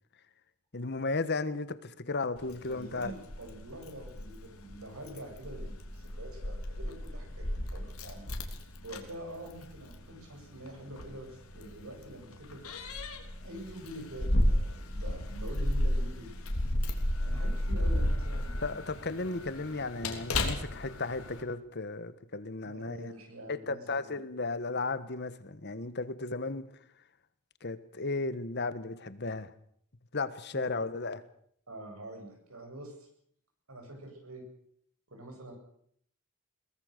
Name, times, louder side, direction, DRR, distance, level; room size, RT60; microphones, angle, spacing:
voice 1, 0.7-3.1 18.6-23.1 23.5-26.7 27.6-29.5 30.1-31.2, left 3 dB, 50° left, 1.4 m, -35 dB
Keys jangling, 2.4-21.4, left 1 dB, 85° left, 3.3 m, -33 dB
voice 2, 2.7-8.3 8.8-12.6 13.4-16.4 17.2-18.8 22.6-24.2 30.5-30.8 31.7-33.1 33.7-34.4 35.1-35.5, right 1 dB, 90° right, 8.0 m, -46 dB
22.5 x 19.0 x 6.7 m
head